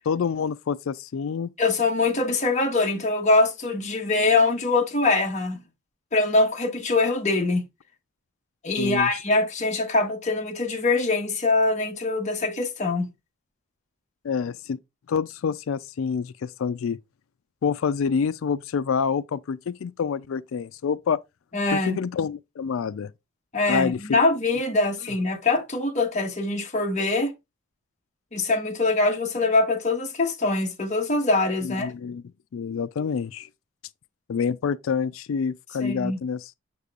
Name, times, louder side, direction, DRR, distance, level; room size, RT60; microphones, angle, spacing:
voice 1, 0.1-1.5 8.8-9.1 14.2-14.8 15.1-17.0 17.6-21.2 21.7-23.1 23.7-24.2 31.6-32.2 32.5-33.5 34.3-36.5, left 6 dB, 75° left, 0.4 m, -27 dB
voice 2, 1.6-5.6 6.1-7.6 8.6-13.1 21.5-22.0 23.5-27.3 28.3-31.9 35.8-36.2, left 3 dB, 35° left, 1.2 m, -23 dB
6.7 x 6.7 x 2.4 m
head